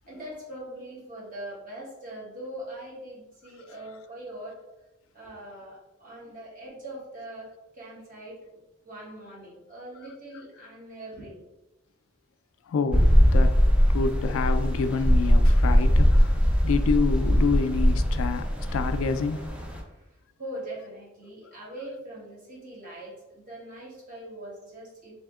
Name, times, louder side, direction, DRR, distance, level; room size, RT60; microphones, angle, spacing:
voice 1, 0.1-4.6 5.1-8.4 8.8-11.4 19.8-20.1 20.4-25.1, right 1 dB, 40° right, 1.5 m, -41 dB
voice 2, 12.7-13.5 13.9-16.4 16.6-18.5 18.7-19.4, left 5 dB, 75° left, 0.3 m, -27 dB
sound 1, 12.9-19.8, equal, 5° right, 0.4 m, -21 dB
3.5 x 2.7 x 3.5 m
head